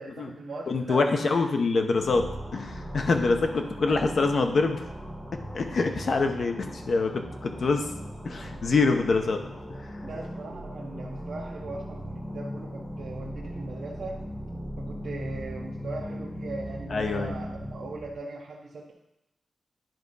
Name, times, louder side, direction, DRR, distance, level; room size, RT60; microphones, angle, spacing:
voice 1, 0.0-1.4 3.9-4.4 10.0-14.2 14.8-18.9, right 3 dB, 60° right, -3 dB, 0.8 m, -39 dB
voice 2, 0.7-4.8 5.3-7.9 8.2-9.4 16.9-17.3, left 3 dB, 45° left, 5 dB, 0.7 m, -25 dB
sound 1, 2.0-18.2, equal, 15° left, 1.6 m, -38 dB
10.5 x 3.6 x 5.3 m, 0.88 s
wide cardioid pair, 175°, 0 cm